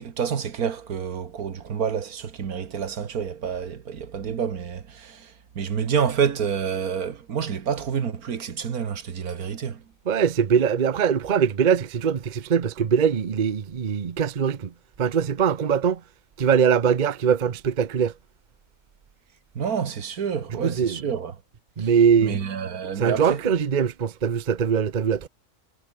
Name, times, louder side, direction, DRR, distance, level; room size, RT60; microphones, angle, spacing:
voice 1, 0.0-9.8 19.6-21.3 21.8-21.9 22.2-23.4, right 7 dB, 80° right, 1.9 m, -28 dB
voice 2, 10.1-14.7 15.0-16.0 16.4-18.1 20.6-21.0 21.8-22.4 23.0-25.3, right 7 dB, 40° right, 0.9 m, -22 dB
omnidirectional pair, 1.5 m